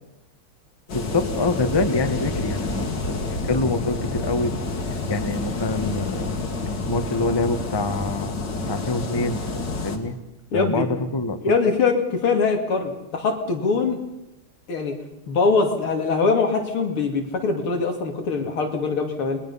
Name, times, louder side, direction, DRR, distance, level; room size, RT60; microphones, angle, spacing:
sound 1, 0.9-10.0, left 3 dB, 55° left, 2.7 m, -28 dB
voice 1, 0.9-4.5 4.9-6.3 6.9-9.4 9.8-10.2 10.5-11.5, left 2 dB, 15° left, 8 dB, 1.1 m, -26 dB
voice 2, 10.5-10.9 11.4-14.0 14.7-14.9 15.3-19.4, left 4 dB, 85° left, 3 dB, 3.5 m, -22 dB
29.0 x 21.0 x 5.7 m, 0.89 s
omnidirectional pair, 2.3 m